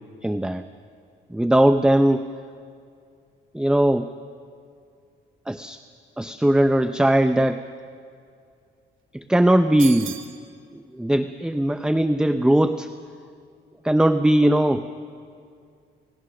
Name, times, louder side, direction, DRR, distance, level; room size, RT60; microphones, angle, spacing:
voice 1, 0.2-0.6 1.3-2.2 3.5-4.1 5.5-5.8 6.2-7.6 9.1-10.1 10.7-12.9 13.8-14.9, right 1 dB, 5° right, 10 dB, 0.7 m, -19 dB
sound 1, 9.8-10.4, right 10 dB, 80° right, 1.4 m, -34 dB
29.5 x 18.5 x 6.4 m, 2.3 s
cardioid pair, 90°, 20 cm